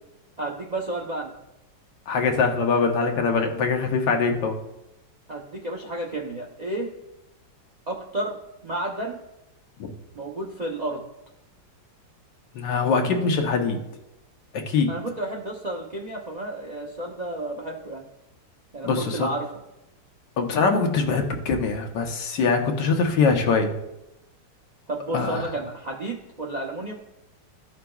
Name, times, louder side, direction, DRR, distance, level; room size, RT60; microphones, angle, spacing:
voice 1, 0.4-1.3 5.3-6.9 7.9-8.4 8.6-9.2 10.1-11.0 14.9-18.1 18.7-19.5 24.9-26.9, right 1 dB, 65° right, 0 dB, 0.4 m, -31 dB
voice 2, 2.1-4.6 12.5-13.8 14.5-14.9 18.8-19.3 20.4-23.7 25.1-25.4, left 4 dB, 75° left, 3 dB, 1.5 m, -23 dB
14.0 x 5.8 x 2.3 m, 0.91 s
omnidirectional pair, 2.0 m